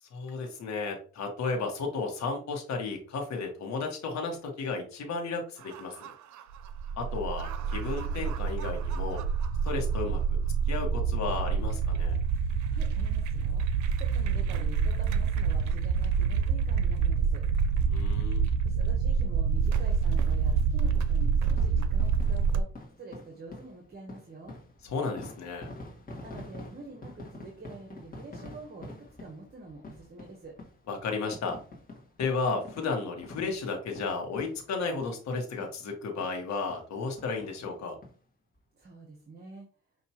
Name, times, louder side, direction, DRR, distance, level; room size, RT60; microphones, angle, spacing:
voice 1, 0.0-6.1 7.0-9.2 9.6-10.4 10.7-12.2 17.9-18.4 24.8-25.7 30.9-31.6 32.2-38.0, left 4 dB, 65° left, 2 dB, 1.3 m, -33 dB
sound 1, 5.6-22.6, right 6 dB, 70° right, 0.5 m, -27 dB
voice 2, 12.7-13.7 14.0-17.4 18.6-22.7 23.0-24.6 26.2-30.5 38.7-39.7, right 3 dB, 35° right, 3 dB, 1.0 m, -46 dB
sound 2, 21.6-35.3 35.6-35.8 36.2-36.3 36.7-36.9 37.2-38.1 38.5-38.6 38.8-38.9, left 2 dB, 30° left, 1.5 m, -47 dB
5.6 x 2.8 x 2.9 m, 0.41 s
cardioid pair, 90°, 30 cm